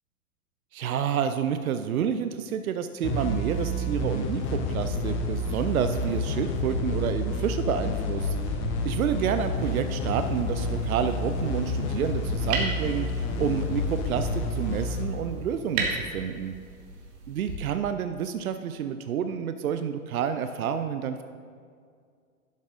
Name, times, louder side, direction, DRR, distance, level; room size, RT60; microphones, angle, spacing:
voice 1, 0.7-16.5 17.3-21.2, right 8 dB, 75° right, 9 dB, 0.5 m, -29 dB
sound 1, 3.0-16.3, left 1 dB, 30° left, 0.8 m, -29 dB
sound 2, 9.5-17.6, right 4 dB, 50° right, 1.6 m, -37 dB
11.5 x 7.1 x 2.5 m, 2.2 s
figure-of-eight pair, 105°, 42 cm